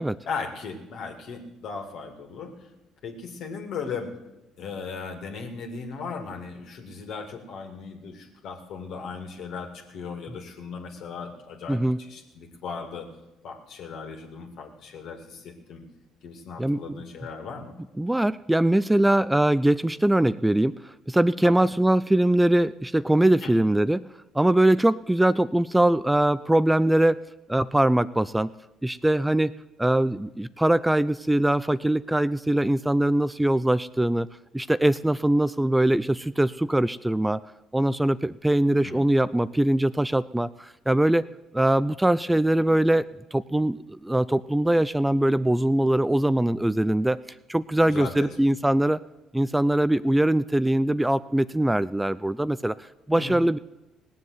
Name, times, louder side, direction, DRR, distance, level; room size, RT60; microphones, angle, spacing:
voice 1, 0.3-2.7 3.0-4.1 4.6-11.8 12.1-13.1 13.4-15.8 16.2-17.7 21.4-21.7 23.4-23.5 38.8-39.0 47.9-48.4 53.1-53.4, left 5 dB, 65° left, 3 dB, 2.4 m, -37 dB
voice 2, 16.6-17.0 18.0-24.1 24.3-27.2 27.5-28.5 28.8-29.5 29.8-34.3 34.5-37.4 37.7-41.3 41.5-47.2 47.5-49.0 49.3-52.8 53.1-53.6, right 1 dB, 10° right, 16 dB, 0.4 m, -22 dB
18.0 x 7.5 x 8.0 m, 1.0 s
hypercardioid pair, 65°, 0 cm